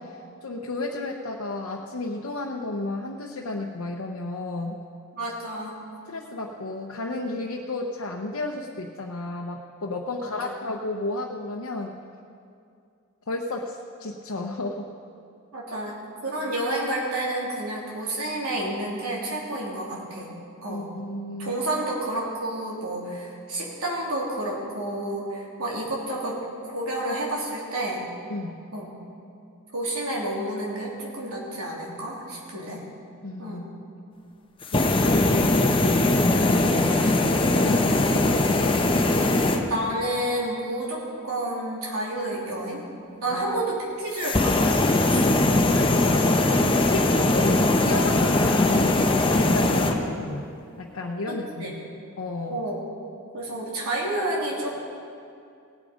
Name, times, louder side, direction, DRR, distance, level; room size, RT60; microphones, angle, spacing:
voice 1, 0.0-4.8 6.0-12.0 13.3-14.9 20.7-21.6 28.3-28.6 33.2-33.6 34.7-38.4 43.3-43.6 45.7-50.5 50.8-51.8 52.2-52.6, left 2 dB, 85° left, 0 dB, 0.8 m, -32 dB
voice 2, 5.1-5.8 10.2-10.5 15.5-20.3 20.6-20.9 21.4-28.1 28.7-28.9 29.7-32.8 33.4-33.6 39.6-42.8 43.2-45.4 51.6-51.8 52.5-52.7 53.3-54.7, right 1 dB, 85° right, -4 dB, 3.1 m, -30 dB
sound 1, 34.6-39.6 44.1-50.0, left 2 dB, 25° left, 0.9 m, -21 dB
17.5 x 8.6 x 5.2 m, 2.4 s
head